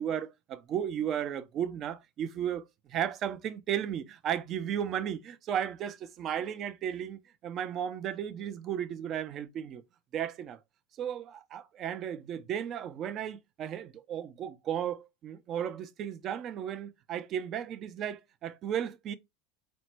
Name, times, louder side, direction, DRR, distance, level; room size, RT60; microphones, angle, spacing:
voice 1, 0.0-9.8 10.1-10.6 11.0-19.1, right 9 dB, 35° right, 0.5 m, -34 dB
4.2 x 2.1 x 4.4 m
supercardioid pair, 135°, 0 cm